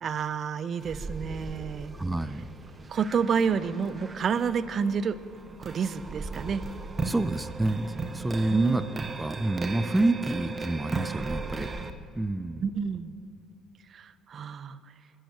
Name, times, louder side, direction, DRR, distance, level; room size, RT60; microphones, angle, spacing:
voice 1, 0.0-2.0 2.9-5.2 5.6-6.6 8.5-8.8 12.6-13.1 13.9-14.8, right 6 dB, 45° right, 15 dB, 0.8 m, -29 dB
sound 1, 0.8-11.9, right 3 dB, 30° right, 1.3 m, -37 dB
voice 2, 2.0-2.4 7.0-7.9 8.1-8.8 9.2-11.7 12.2-12.6, right 2 dB, 15° right, 13 dB, 0.8 m, -27 dB
28.0 x 15.5 x 3.1 m, 2.6 s
hypercardioid pair, 55°, 0 cm